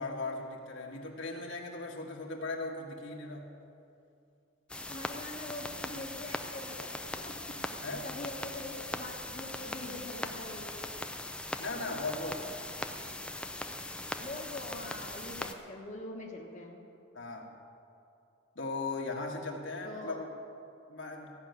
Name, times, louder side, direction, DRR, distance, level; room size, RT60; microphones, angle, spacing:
voice 1, 0.0-3.5 7.8-8.1 11.6-12.4 17.1-17.5 18.5-20.3 20.9-21.3, left 3 dB, 60° left, 0 dB, 1.5 m, -38 dB
sound 1, 4.7-15.5, left 1 dB, 5° left, 0.5 m, -40 dB
voice 2, 4.9-7.5 8.0-10.9 14.2-16.8 19.8-20.2, left 2 dB, 35° left, -2 dB, 1.2 m, -43 dB
14.5 x 6.3 x 9.4 m, 2.6 s
head